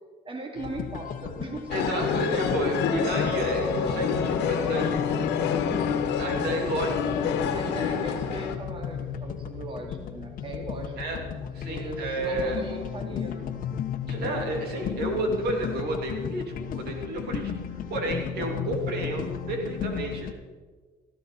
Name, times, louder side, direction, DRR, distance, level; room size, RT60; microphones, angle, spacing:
voice 1, 0.2-2.5 7.5-11.0 11.6-13.5, right 2 dB, 30° right, 2 dB, 2.7 m, -38 dB
sound 1, 0.6-20.3, left 8 dB, 55° left, 1.2 m, -35 dB
sound 2, 1.7-8.6, left 6 dB, 85° left, 1.6 m, -27 dB
voice 2, 1.7-5.3 5.6-5.7 6.1-7.0 11.0-11.2 11.5-12.6 14.1-20.3, right 2 dB, 70° right, 2 dB, 3.0 m, -31 dB
17.5 x 14.5 x 4.4 m, 1.4 s
cardioid pair, 110°, 17 cm